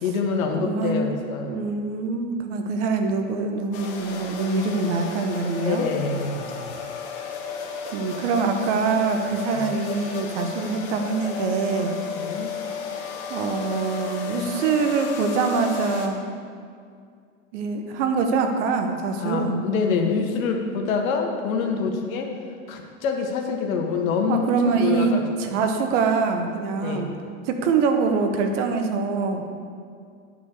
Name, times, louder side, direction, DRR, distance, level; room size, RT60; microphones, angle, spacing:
voice 1, 0.0-1.5 5.6-6.7 9.5-9.7 12.1-12.5 19.2-22.3 22.7-25.2 26.8-27.1, left 5 dB, 70° left, 3 dB, 1.4 m, -26 dB
voice 2, 0.5-1.1 1.4-5.9 7.9-11.9 13.3-16.2 17.5-19.6 24.3-25.1 25.4-27.1 27.5-29.4, right 4 dB, 55° right, 5 dB, 1.1 m, -24 dB
sound 1, 3.7-16.1, left 5 dB, 45° left, 1.3 m, -34 dB
9.2 x 4.4 x 6.5 m, 2.2 s
hypercardioid pair, 125°, 42 cm